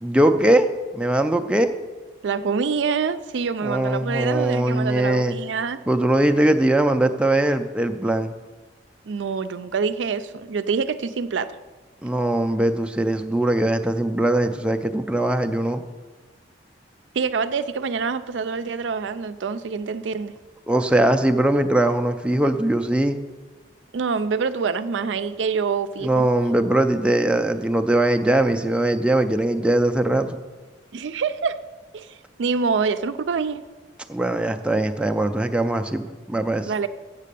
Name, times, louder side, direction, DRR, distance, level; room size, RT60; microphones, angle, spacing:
voice 1, 0.0-0.7 0.9-1.7 3.6-5.3 5.9-8.3 12.0-15.8 20.7-23.2 26.0-30.4 34.1-36.7, right 1 dB, 5° right, 6 dB, 0.4 m, -21 dB
voice 2, 2.2-5.8 9.1-11.6 17.2-20.3 23.9-26.3 30.9-31.6 31.9-33.6 36.7-36.9, right 5 dB, 85° right, 12 dB, 0.4 m, -26 dB
7.4 x 7.4 x 6.8 m, 1.3 s
head